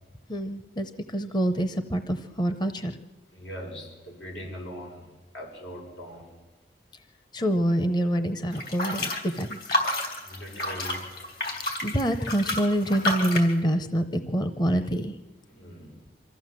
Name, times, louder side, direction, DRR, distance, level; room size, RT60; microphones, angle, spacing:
voice 1, 0.3-3.0 6.9-7.0 7.3-9.7 11.8-15.2, right 1 dB, 25° left, 9 dB, 0.7 m, -26 dB
voice 2, 3.3-6.4 10.2-11.1 15.5-16.0, equal, 90° left, 0 dB, 6.8 m, -41 dB
sound 1, 8.5-13.5, left 1 dB, 55° left, 3.7 m, -30 dB
24.5 x 14.5 x 7.6 m, 1.2 s
head